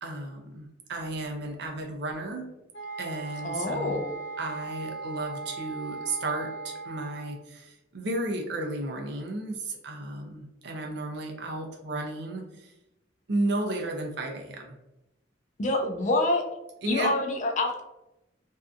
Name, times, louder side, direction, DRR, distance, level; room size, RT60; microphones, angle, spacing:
voice 1, 0.0-2.5 3.0-4.1 4.4-12.7 13.3-14.8 16.8-17.2, right 2 dB, 65° right, 2 dB, 0.6 m, -33 dB
sound 1, 2.7-7.4, right 4 dB, 80° left, 1.0 m, -38 dB
voice 2, 3.4-4.1 15.6-16.4 16.9-17.8, left 2 dB, 40° left, 3 dB, 0.4 m, -26 dB
2.6 x 2.3 x 2.4 m, 0.92 s
head